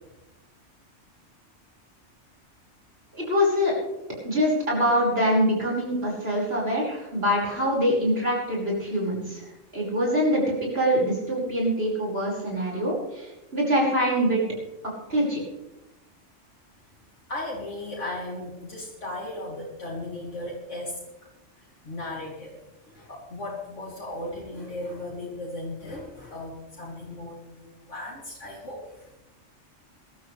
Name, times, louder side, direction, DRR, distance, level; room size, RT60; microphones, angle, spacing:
voice 1, 3.2-3.7 4.2-9.4 9.7-13.3 13.5-14.4 15.1-15.4, equal, 50° right, -4 dB, 5.8 m, -24 dB
voice 2, 17.3-21.0 21.8-22.5 22.9-29.1, left 2 dB, 75° left, -5 dB, 3.4 m, -36 dB
23.0 x 13.0 x 3.4 m, 1.0 s
omnidirectional pair, 1.3 m